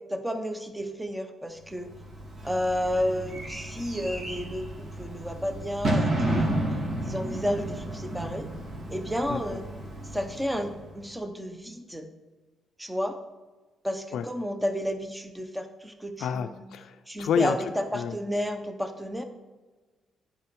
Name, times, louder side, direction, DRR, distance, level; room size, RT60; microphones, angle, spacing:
voice 1, 0.1-1.9 2.4-6.6 7.0-8.5 8.9-9.6 10.1-12.1 12.8-13.1 13.8-16.7 17.1-19.2, equal, 5° right, 7 dB, 0.9 m, -31 dB
Bird / Fireworks, 1.8-11.0, right 1 dB, 60° right, 3.1 m, -32 dB
voice 2, 16.2-17.6 17.9-18.2, left 7 dB, 75° left, 8 dB, 0.4 m, -28 dB
10.0 x 5.2 x 4.6 m, 1.2 s
cardioid pair, 90°, 0 cm